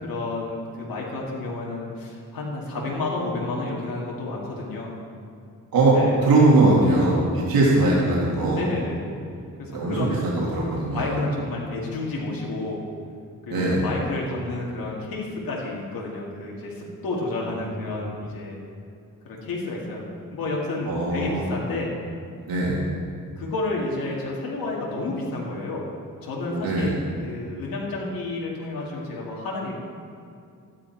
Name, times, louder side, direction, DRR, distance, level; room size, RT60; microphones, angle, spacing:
voice 1, 0.0-4.9 6.0-6.3 8.5-9.2 9.6-10.2 10.9-12.8 13.4-18.6 19.2-20.1 20.3-21.9 23.4-25.9 26.2-27.0 27.2-29.7, left 2 dB, 90° left, -3 dB, 2.1 m, -30 dB
voice 2, 5.7-8.6 9.7-11.1 13.5-13.8 18.0-18.1 20.9-21.4 22.5-22.8 26.5-26.9, right 2 dB, 85° right, -5 dB, 2.2 m, -20 dB
13.5 x 9.9 x 4.5 m, 2.4 s
cardioid pair, 100°, 34 cm